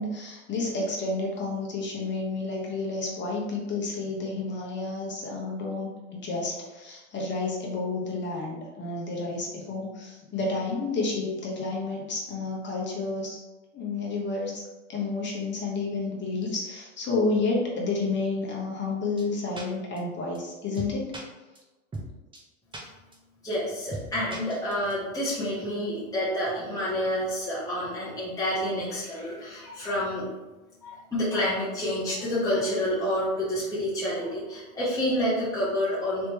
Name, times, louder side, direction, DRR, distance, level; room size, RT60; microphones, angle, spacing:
voice 1, 0.0-13.4 13.7-14.6 14.9-21.1, left 3 dB, 25° left, -2 dB, 1.1 m, -30 dB
sound 1, 19.2-19.3 19.6-19.7 20.0-20.1 20.3-20.4 20.7-21.2 21.6-21.7 21.9-22.1 22.3-22.4 22.7-22.8 23.1-23.2 23.5-23.6 23.9-24.1 24.3-24.9, right 2 dB, 10° right, 0.7 m, -37 dB
voice 2, 23.4-30.3 30.8-36.3, left 1 dB, 10° left, -10 dB, 1.2 m, -28 dB
3.4 x 2.9 x 3.0 m, 1.1 s
hypercardioid pair, 100°, 42 cm